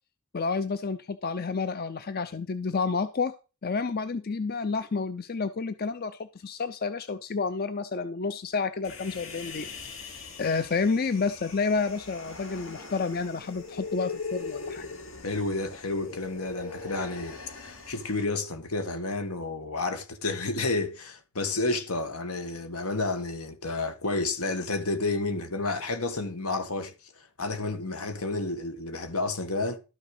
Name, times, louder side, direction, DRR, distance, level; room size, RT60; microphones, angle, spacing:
voice 1, 0.3-3.3 3.6-9.7 10.4-14.9, left 4 dB, 45° left, 0.5 m, -30 dB
Human voice, 8.8-18.2, left 4 dB, 60° left, 2.4 m, -40 dB
voice 2, 15.2-29.8, left 2 dB, 80° left, 1.7 m, -31 dB
12.5 x 6.5 x 5.0 m
head